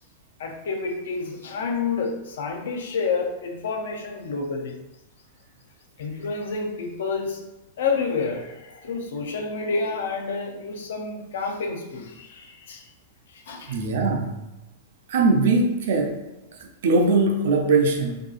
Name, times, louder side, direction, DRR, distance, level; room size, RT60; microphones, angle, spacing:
voice 1, 0.4-4.8 6.0-7.4 7.8-12.9 13.3-13.8, left 4 dB, 80° left, 4 dB, 0.4 m, -29 dB
voice 2, 13.7-14.3 15.1-16.2 16.8-18.2, right 3 dB, 65° right, 4 dB, 0.4 m, -20 dB
2.6 x 2.3 x 2.4 m, 1.0 s
supercardioid pair, 170°, 0 cm